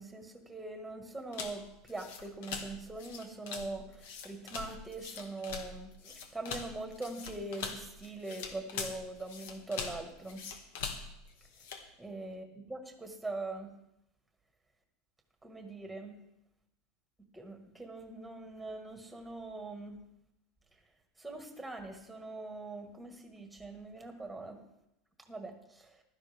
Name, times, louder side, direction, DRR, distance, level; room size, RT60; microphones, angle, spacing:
voice 1, 0.0-10.4 12.0-13.7 15.4-16.2 17.3-20.0 21.2-24.6 25.3-26.0, right 2 dB, 5° right, 4 dB, 1.7 m, -42 dB
sound 1, 1.3-11.9, left 5 dB, 75° left, 1.8 m, -43 dB
15.5 x 12.5 x 3.5 m, 0.84 s
supercardioid pair, 145°, 0 cm